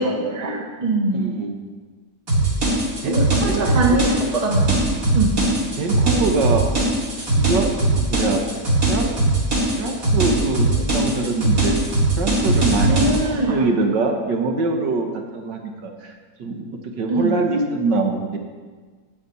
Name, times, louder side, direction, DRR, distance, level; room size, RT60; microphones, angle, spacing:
voice 1, 0.0-1.4 3.0-4.8 5.1-5.5 12.9-13.6 17.1-17.4, right 2 dB, 25° right, 1 dB, 1.2 m, -22 dB
voice 2, 1.1-1.5 3.0-3.2 3.4-3.6 5.8-6.7 7.3-7.7 8.0-8.4 8.9-9.1 9.8-11.8 12.2-16.1 16.4-18.4, right 3 dB, 75° right, 3 dB, 1.8 m, -23 dB
sound 1, 2.3-13.2, right 2 dB, 50° right, 3.0 m, -20 dB
9.3 x 5.8 x 8.3 m, 1.5 s
omnidirectional pair, 1.9 m